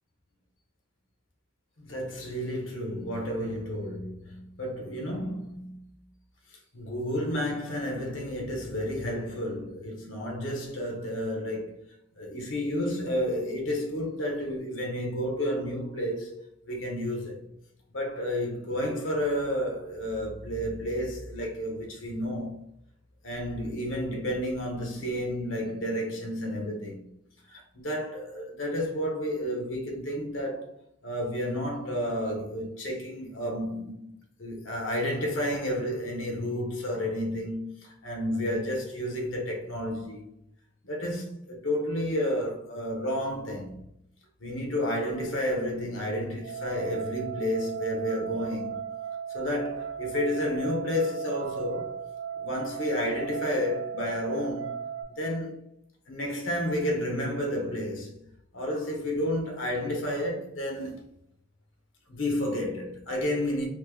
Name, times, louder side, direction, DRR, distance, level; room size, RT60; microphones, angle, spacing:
voice 1, 1.8-5.8 6.7-11.8 12.2-17.4 17.9-22.7 23.2-27.0 27.5-30.7 31.0-34.1 34.4-40.2 40.8-43.8 44.4-48.8 49.3-52.0 52.3-54.8 55.2-55.6 56.1-61.0 62.1-63.7, equal, 80° left, 0.9 m, -31 dB
sound 1, 46.4-55.0, right 8 dB, 90° right, 0.8 m, -37 dB
3.1 x 2.1 x 3.3 m
head